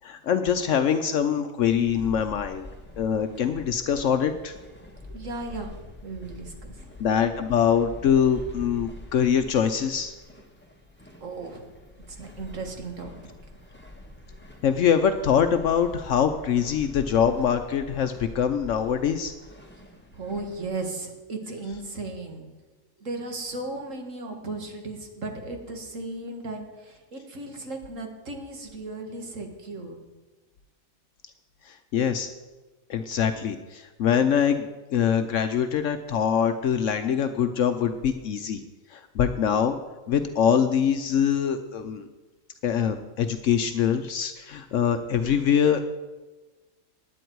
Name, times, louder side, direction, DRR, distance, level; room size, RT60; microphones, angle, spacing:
voice 1, 0.0-2.7 3.0-4.5 7.0-10.1 14.6-19.3 31.9-32.3 32.9-38.6 38.9-39.8 40.1-42.0 42.6-45.8, left 8 dB, 70° left, 8 dB, 1.0 m, -24 dB
sound 1, 1.6-20.7, left 2 dB, 10° left, 1.4 m, -45 dB
voice 2, 5.1-6.9 11.2-11.7 12.1-13.1 20.1-22.5 23.0-30.0, right 2 dB, 65° right, 4 dB, 2.1 m, -36 dB
16.0 x 10.0 x 4.6 m, 1.2 s
omnidirectional pair, 1.4 m